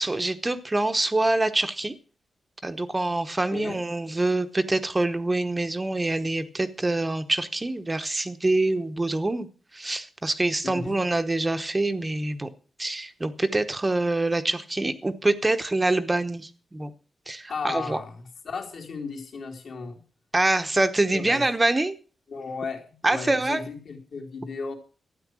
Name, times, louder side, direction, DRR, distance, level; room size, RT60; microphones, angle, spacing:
voice 1, 0.0-1.9 2.6-9.5 9.7-12.5 12.8-16.9 17.3-18.0 20.3-21.9 23.0-23.6, right 2 dB, 15° right, 10 dB, 0.9 m, -25 dB
voice 2, 3.5-3.8 10.6-11.0 17.5-18.1 18.4-20.0 21.1-21.4 22.3-24.7, left 4 dB, 60° left, 0 dB, 3.4 m, -35 dB
13.0 x 9.3 x 6.2 m, 0.38 s
wide cardioid pair, 155°, 0 cm